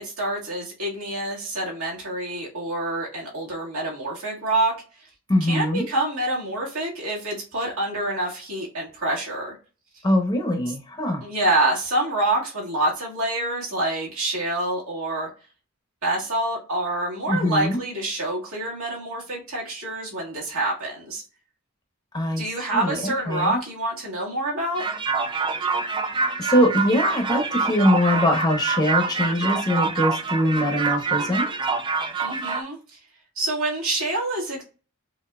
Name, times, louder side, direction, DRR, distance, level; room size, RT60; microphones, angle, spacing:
voice 1, 0.0-4.7 5.4-9.6 11.2-15.3 16.0-21.2 22.4-24.8 32.2-33.0 33.4-34.6, right 2 dB, 80° right, -4 dB, 1.9 m, -27 dB
voice 2, 5.3-5.8 10.0-11.2 17.3-17.8 22.1-23.6 26.4-31.5, left 1 dB, 20° left, 2 dB, 0.8 m, -22 dB
sound 1, 24.8-32.6, right 4 dB, 20° right, 0.3 m, -26 dB
5.7 x 2.6 x 2.3 m, 0.35 s
head